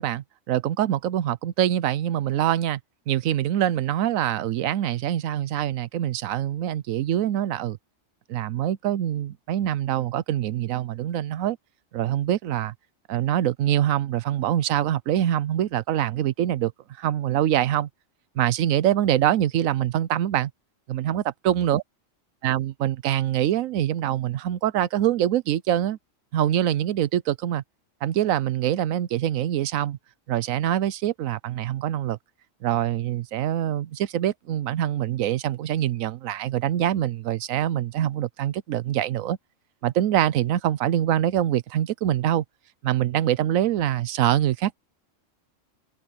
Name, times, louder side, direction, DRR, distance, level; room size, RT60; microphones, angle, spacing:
voice 1, 0.0-2.8 3.1-7.8 8.3-11.6 11.9-12.7 13.1-16.7 17.0-17.9 18.3-20.5 20.9-21.8 22.4-26.0 26.3-27.6 28.0-30.0 30.3-32.2 32.6-39.4 39.8-42.4 42.8-44.8, right 11 dB, 85° right, 1.1 m, -24 dB
omnidirectional pair, 1.4 m